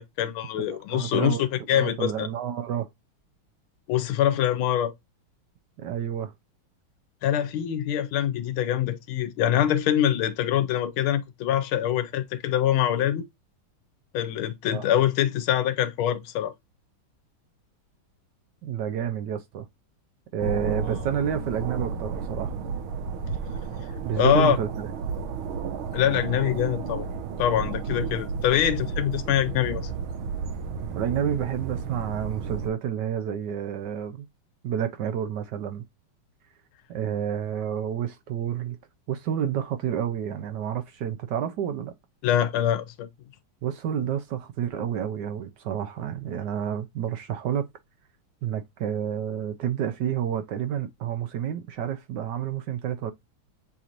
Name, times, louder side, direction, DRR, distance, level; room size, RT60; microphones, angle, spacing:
voice 1, 0.0-2.3 3.9-4.9 7.2-13.2 14.1-16.5 24.2-24.6 25.9-27.1 27.4-29.9 42.2-43.1, left 10 dB, 85° left, 1.5 m, -24 dB
voice 2, 0.6-1.4 1.7-2.9 5.8-6.3 14.7-14.8 18.6-19.6 20.3-22.5 24.0-24.9 31.0-34.3 34.6-35.8 36.9-38.8 39.1-41.9 43.6-47.6 48.4-53.1, right 9 dB, 70° right, 1.1 m, -29 dB
sound 1, 20.4-32.7, right 5 dB, 90° right, 1.5 m, -32 dB
6.9 x 3.0 x 2.5 m
omnidirectional pair, 2.2 m